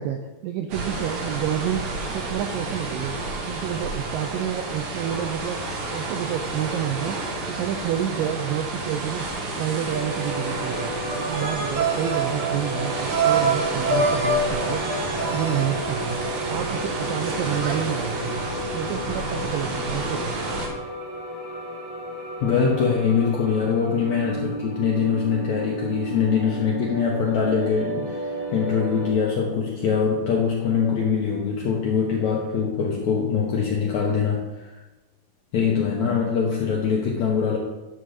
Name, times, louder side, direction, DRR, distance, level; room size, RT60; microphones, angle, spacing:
voice 1, 0.0-3.1 3.5-5.6 5.9-7.2 7.5-9.3 9.6-10.9 11.3-14.9 15.2-16.2 16.5-18.4 18.7-20.4, right 10 dB, 85° right, 5 dB, 2.0 m, -29 dB
sound 1, 0.7-20.7, right 2 dB, 60° right, 2.1 m, -30 dB
sound 2, 9.9-29.1, equal, 20° left, 0.5 m, -33 dB
sound 3, 11.1-16.5, right 3 dB, 35° right, 1.8 m, -26 dB
voice 2, 22.4-34.7 35.5-37.6, left 6 dB, 75° left, -2 dB, 1.7 m, -23 dB
11.0 x 3.8 x 6.4 m, 1.1 s
omnidirectional pair, 4.5 m